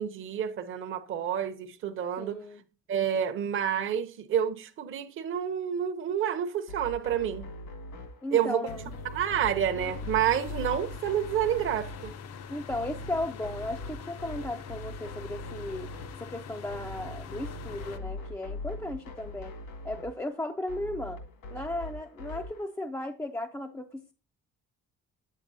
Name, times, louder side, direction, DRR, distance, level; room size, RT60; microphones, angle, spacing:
voice 1, 0.0-2.4 2.9-7.5 8.3-8.6 9.1-12.1, right 9 dB, 40° right, 0.7 m, -29 dB
voice 2, 2.2-2.6 8.2-8.9 12.5-15.9 16.2-19.6 19.8-21.2 21.5-24.1, left 1 dB, 10° left, 0.3 m, -35 dB
sound 1, 6.7-22.6, left 2 dB, 80° left, 2.1 m, -42 dB
sound 2, 8.7-18.0, left 6 dB, 55° left, 0.6 m, -44 dB
8.4 x 7.4 x 2.6 m
cardioid pair, 155°, 31 cm